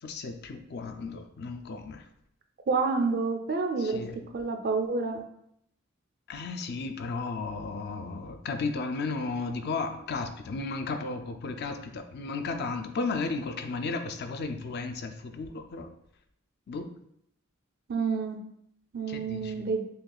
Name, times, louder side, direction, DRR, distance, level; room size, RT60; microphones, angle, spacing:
voice 1, 0.0-2.0 3.8-4.2 6.3-15.9 16.7-16.9 19.1-19.6, left 3 dB, 50° left, 7 dB, 0.4 m, -34 dB
voice 2, 2.7-4.0 4.3-5.2 17.9-18.4 18.9-19.8, right 4 dB, 50° right, 5 dB, 0.5 m, -28 dB
6.4 x 2.4 x 2.3 m, 0.72 s
head